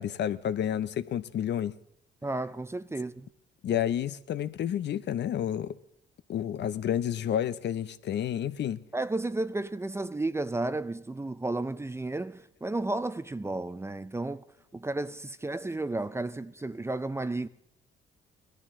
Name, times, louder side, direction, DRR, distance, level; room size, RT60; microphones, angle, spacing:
voice 1, 0.0-1.7 3.6-5.8 6.3-8.8, left 10 dB, 60° left, 0.7 m, -30 dB
voice 2, 2.2-3.3 8.9-14.4 14.7-17.5, right 2 dB, 15° right, 0.5 m, -33 dB
18.5 x 13.0 x 3.7 m
cardioid pair, 90°, 20 cm